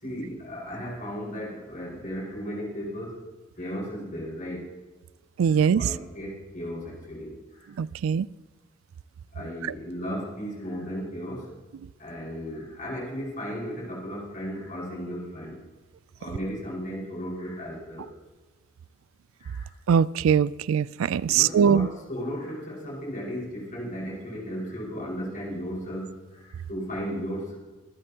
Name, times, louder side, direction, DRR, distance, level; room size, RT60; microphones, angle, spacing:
voice 1, 0.0-3.2 3.6-4.7 5.7-7.8 9.3-11.5 12.0-15.6 16.2-18.1 19.4-19.7 21.2-27.5, equal, 40° left, 5.1 m, -35 dB
voice 2, 5.4-5.9 7.8-8.3 19.9-21.9, right 7 dB, 80° right, 0.3 m, -21 dB
24.5 x 12.0 x 2.9 m
head